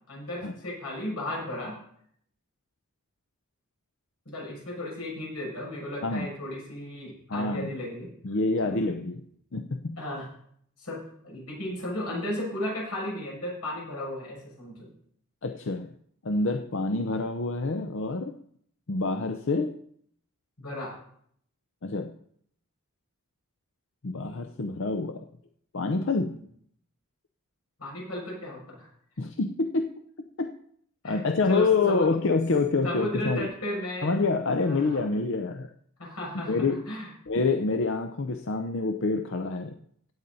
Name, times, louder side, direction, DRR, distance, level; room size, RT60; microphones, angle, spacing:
voice 1, 0.1-1.8 4.2-8.1 8.6-8.8 10.0-10.3 10.8-14.9 20.6-20.9 26.3-26.4 27.8-28.9 31.0-31.2 31.5-32.1 32.8-34.1 34.6-35.0 36.0-37.1, left 1 dB, 90° left, -3 dB, 6.6 m, -35 dB
voice 2, 7.3-7.7 8.2-10.0 15.4-15.9 16.2-18.4 18.9-19.8 21.8-22.1 24.0-25.2 25.7-26.4 29.2-30.5 31.0-33.5 34.0-35.7 36.5-36.8 37.3-39.8, left 3 dB, 55° left, 6 dB, 0.6 m, -27 dB
16.5 x 8.6 x 4.1 m, 0.67 s
head